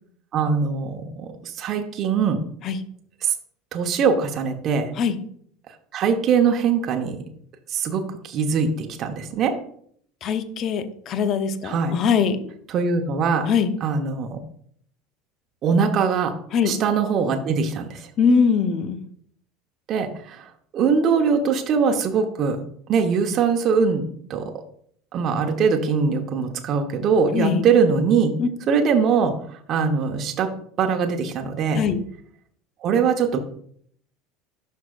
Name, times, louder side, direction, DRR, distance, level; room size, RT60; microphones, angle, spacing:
voice 1, 0.3-2.4 3.2-3.3 3.7-4.9 5.9-7.2 7.7-9.5 11.6-11.9 12.7-13.5 13.8-14.4 15.6-16.3 16.6-18.1 19.9-22.6 22.9-24.0 24.3-24.5 25.1-28.3 28.7-30.5 30.8-31.8 32.8-33.4, right 6 dB, 45° right, 4 dB, 1.0 m, -22 dB
voice 2, 10.2-12.4 13.5-13.7 16.5-16.8 18.2-19.0 27.3-27.6 28.4-28.5 31.7-32.0, left 6 dB, 45° left, 10 dB, 0.9 m, -21 dB
12.0 x 4.6 x 2.5 m, 0.63 s
hypercardioid pair, 75°, 0 cm